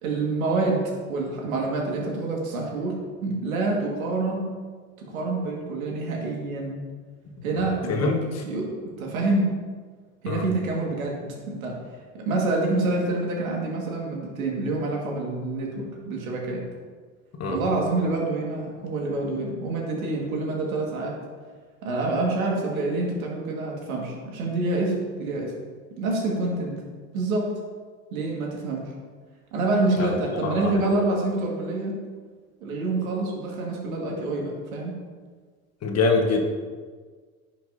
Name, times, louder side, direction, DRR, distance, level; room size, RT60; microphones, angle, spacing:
voice 1, 0.0-4.5 5.0-6.8 7.4-8.2 8.4-9.5 10.2-11.8 12.1-16.6 17.5-21.2 21.8-25.5 25.9-26.8 27.1-27.5 28.1-28.9 29.5-32.0 32.6-34.9, right 2 dB, 80° right, -1 dB, 2.1 m, -27 dB
voice 2, 30.4-30.8 35.8-36.4, left 4 dB, 35° left, 2 dB, 1.5 m, -23 dB
10.5 x 6.0 x 2.8 m, 1.5 s
hypercardioid pair, 75°, 42 cm